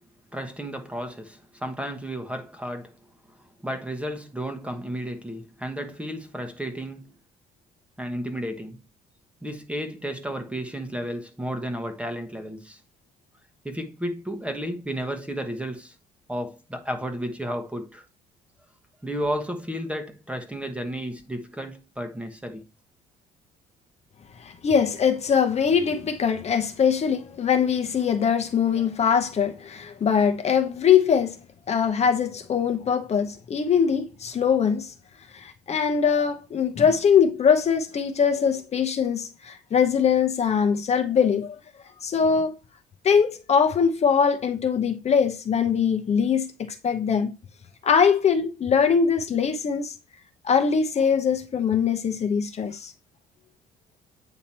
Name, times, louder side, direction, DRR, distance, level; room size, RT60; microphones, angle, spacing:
voice 1, 0.3-2.9 3.6-7.1 8.0-8.8 9.4-12.8 13.6-15.9 16.3-18.0 19.0-22.6, equal, 5° right, 1.1 m, -32 dB
voice 2, 24.4-31.4 31.7-34.9 35.3-41.6 42.0-42.5 43.0-47.3 47.8-50.0 50.4-52.9, left 7 dB, 40° left, 0.9 m, -22 dB
8.7 x 2.9 x 4.3 m
cardioid pair, 110°, 17 cm